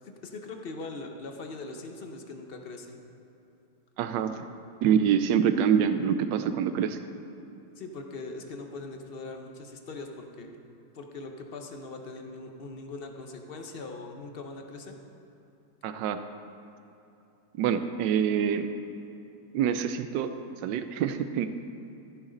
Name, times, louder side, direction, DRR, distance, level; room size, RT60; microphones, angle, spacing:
voice 1, 0.0-3.0 7.8-10.6 10.9-15.0, left 3 dB, 50° left, 4 dB, 0.7 m, -41 dB
voice 2, 4.0-4.5 4.8-7.0 15.8-16.2 17.6-18.7 19.5-20.3 20.6-21.5, right 8 dB, 85° right, 10 dB, 1.2 m, -25 dB
15.0 x 7.2 x 3.9 m, 2.9 s
omnidirectional pair, 1.9 m